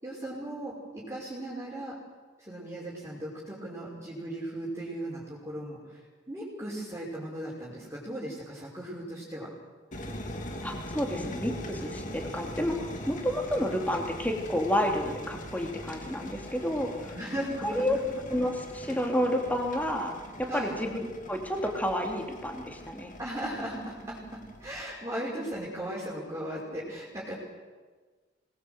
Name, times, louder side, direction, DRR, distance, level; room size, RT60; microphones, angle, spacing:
voice 1, 0.0-1.9 2.4-6.0 6.3-9.5 17.1-17.8 20.5-20.8 23.2-24.2 24.6-27.3, right 1 dB, 15° right, -6 dB, 5.4 m, -37 dB
sound 1, 9.9-24.8, left 1 dB, 45° left, 2.8 m, -42 dB
voice 2, 10.6-17.1 17.6-18.0 18.3-20.1 20.4-23.1, equal, 10° left, 2 dB, 3.0 m, -30 dB
25.5 x 20.0 x 7.9 m, 1.4 s
head